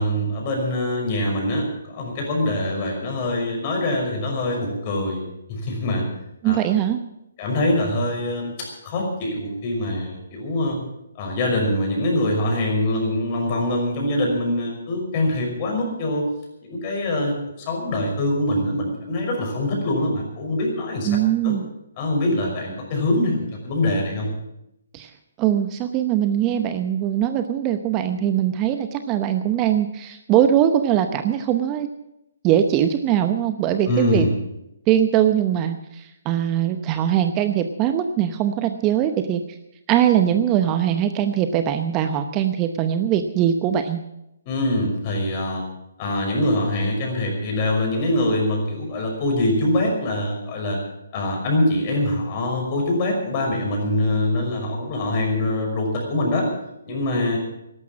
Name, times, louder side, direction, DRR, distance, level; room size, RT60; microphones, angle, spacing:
voice 1, 0.0-5.2 5.5-6.1 6.4-6.6 7.4-10.8 11.2-16.2 16.6-17.3 17.7-21.1 21.4-21.5 22.0-24.3 33.9-34.3 44.5-45.6 46.0-50.8 51.1-56.5 56.8-57.4, left 1 dB, 35° left, 0 dB, 5.8 m, -24 dB
voice 2, 6.4-7.0 21.1-21.6 24.9-25.1 25.4-31.9 32.4-34.3 34.9-39.4 39.9-44.0, right 10 dB, 25° right, 9 dB, 0.8 m, -21 dB
13.5 x 12.0 x 7.4 m, 0.86 s
figure-of-eight pair, 145°, 0 cm